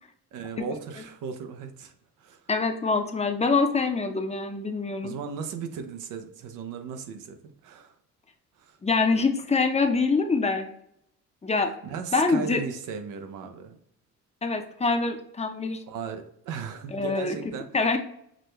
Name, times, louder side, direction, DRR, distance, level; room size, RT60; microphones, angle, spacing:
voice 1, 0.3-1.9 2.2-2.4 5.0-7.9 8.6-8.8 11.8-13.8 15.9-17.7, right 6 dB, 85° right, 7 dB, 0.6 m, -36 dB
voice 2, 2.5-5.1 8.8-10.7 11.4-11.7 12.1-12.6 14.4-15.8 16.9-17.4 17.7-18.0, left 4 dB, 20° left, 5 dB, 0.6 m, -25 dB
6.1 x 2.1 x 3.2 m, 0.71 s
cardioid pair, 90°, 30 cm